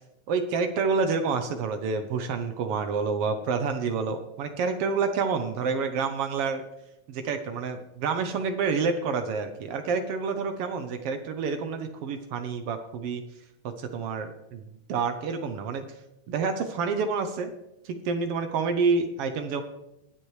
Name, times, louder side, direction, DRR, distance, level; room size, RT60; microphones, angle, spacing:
voice 1, 0.3-6.6 7.1-13.2 13.6-14.6 14.9-15.9 16.3-17.5 17.8-19.6, right 5 dB, 70° right, 7 dB, 1.5 m, -28 dB
22.5 x 7.8 x 3.2 m, 0.90 s
omnidirectional pair, 3.3 m